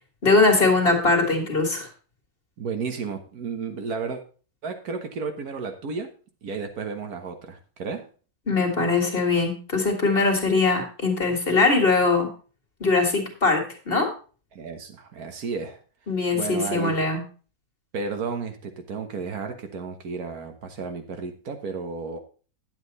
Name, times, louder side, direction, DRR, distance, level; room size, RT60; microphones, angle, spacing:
voice 1, 0.2-1.9 8.5-12.3 12.8-14.1 16.1-17.2, left 3 dB, 40° left, 2 dB, 2.1 m, -21 dB
voice 2, 2.6-4.2 4.6-6.1 6.4-8.1 14.5-15.8 16.3-17.0 17.9-22.2, right 5 dB, 80° right, 6 dB, 1.7 m, -32 dB
9.9 x 7.9 x 4.1 m, 0.38 s
omnidirectional pair, 1.6 m